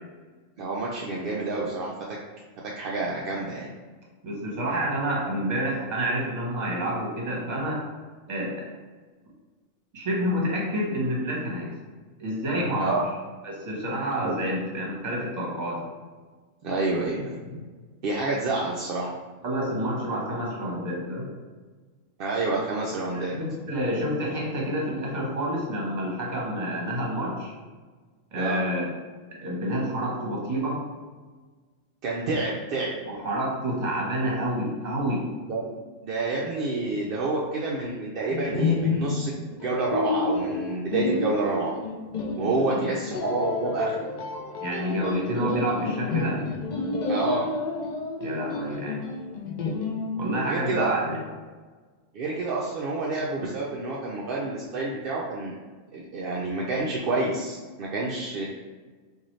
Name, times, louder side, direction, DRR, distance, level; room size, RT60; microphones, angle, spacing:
voice 1, 0.6-1.9 2.6-3.7 12.8-13.1 14.2-14.4 16.6-17.6 18.0-19.1 20.4-20.5 22.2-23.3 28.3-28.6 32.0-32.9 35.5-35.7 36.0-41.7 42.4-44.0 47.1-47.5 50.5-50.9 52.1-55.5 55.9-58.4, right 3 dB, 60° right, -4 dB, 0.6 m, -28 dB
voice 2, 4.2-7.9 8.3-8.6 9.9-11.7 12.2-13.0 13.4-15.8 19.4-21.3 23.1-27.5 28.3-28.9 29.3-30.9 33.0-35.3 42.3-42.9 44.6-46.5 48.2-49.1 50.2-51.2, equal, 40° right, -3 dB, 1.0 m, -28 dB
sound 1, 38.3-50.2, left 3 dB, 70° left, 0.4 m, -30 dB
3.9 x 2.6 x 3.1 m, 1.4 s
omnidirectional pair, 1.3 m